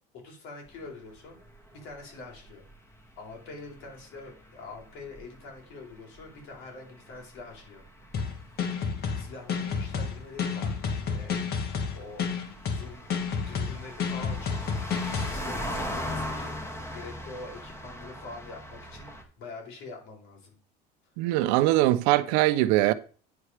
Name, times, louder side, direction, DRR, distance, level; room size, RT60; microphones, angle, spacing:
voice 1, 0.1-1.4 1.7-2.7 3.2-7.9 9.1-11.6 11.9-12.2 12.6-13.0 13.4-16.6 16.9-20.6, left 3 dB, 70° left, 4.2 m, -45 dB
sound 1, 0.7-19.2, equal, 10° left, 2.0 m, -40 dB
sound 2, 8.1-15.3, left 6 dB, 45° left, 1.6 m, -30 dB
voice 2, 21.2-22.9, right 16 dB, 85° right, 0.7 m, -22 dB
9.7 x 4.4 x 5.0 m
cardioid pair, 115°, 21 cm